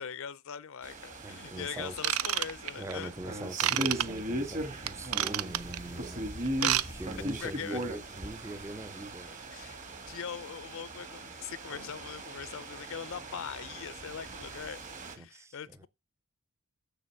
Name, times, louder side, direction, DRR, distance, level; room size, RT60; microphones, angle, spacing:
voice 1, 0.0-3.1 6.6-7.0 7.4-7.8 9.5-9.8 10.1-14.8 15.2-15.9, left 7 dB, 65° left, 0.5 m, -41 dB
sound 1, 0.8-15.1, right 1 dB, 35° right, 1.7 m, -39 dB
voice 2, 1.2-2.0 2.8-6.3 6.9-9.4 15.2-15.9, right 1 dB, 15° right, 0.5 m, -42 dB
Ratchet pawl / Tools, 2.0-2.9 3.6-4.0 4.9-5.8 6.5-6.9 7.1-7.3 7.8-7.9, right 12 dB, 75° right, 0.5 m, -28 dB
sound 2, 11.7-14.1, right 3 dB, 60° right, 2.1 m, -58 dB
7.1 x 6.8 x 7.3 m
head